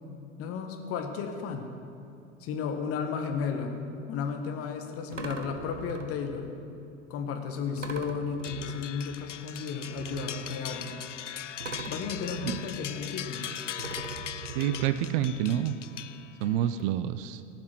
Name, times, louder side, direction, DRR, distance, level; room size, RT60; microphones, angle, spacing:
voice 1, 0.4-1.7 2.4-3.8 4.1-6.5 7.1-11.0 11.9-13.4, left 6 dB, 40° left, 4 dB, 1.5 m, -33 dB
sound 1, 3.8-3.9 5.1-6.5 7.8-9.3 10.0-11.2 11.6-13.5 13.8-15.5 16.4-16.5 16.8-16.9, right 4 dB, 90° right, 0.7 m, -41 dB
sound 2, 8.4-16.6, left 10 dB, 80° left, 0.5 m, -40 dB
voice 2, 14.6-15.7 16.4-17.4, right 11 dB, 45° right, 12 dB, 0.6 m, -28 dB
17.5 x 6.0 x 7.6 m, 2.7 s
figure-of-eight pair, 80°, 36 cm